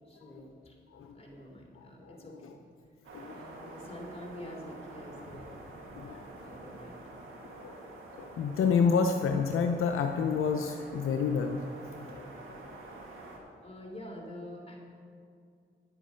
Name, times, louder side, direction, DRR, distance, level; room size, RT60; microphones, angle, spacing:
voice 1, 0.1-0.7 1.1-2.6 3.3-5.6 6.4-7.0 13.6-14.8, equal, 30° left, -1 dB, 3.1 m, -46 dB
sound 1, 3.0-13.4, right 2 dB, 75° right, 1.8 m, -47 dB
voice 2, 8.1-11.6 12.1-12.3, left 5 dB, 80° left, 5 dB, 0.6 m, -29 dB
10.0 x 7.9 x 5.6 m, 2.3 s
supercardioid pair, 50°, 21 cm